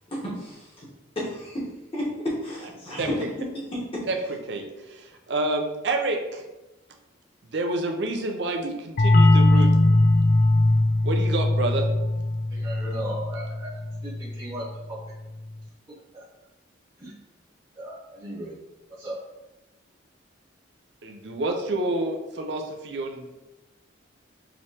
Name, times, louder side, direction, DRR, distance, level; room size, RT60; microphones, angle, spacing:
voice 1, 0.1-0.9 1.1-3.3 3.5-4.1, equal, 30° left, -5 dB, 1.1 m, -32 dB
voice 2, 4.5-6.4 7.5-9.8 11.0-11.9 21.0-23.4, right 2 dB, 60° right, 3 dB, 0.6 m, -28 dB
sound 1, 9.0-14.4, left 1 dB, 50° left, 0.4 m, -20 dB
voice 3, 12.5-13.7 14.0-15.0 16.1-16.2 17.0-17.1 17.8-18.5 19.0-19.1, right 1 dB, 20° right, -8 dB, 1.0 m, -36 dB
4.9 x 3.1 x 2.8 m, 1.0 s
head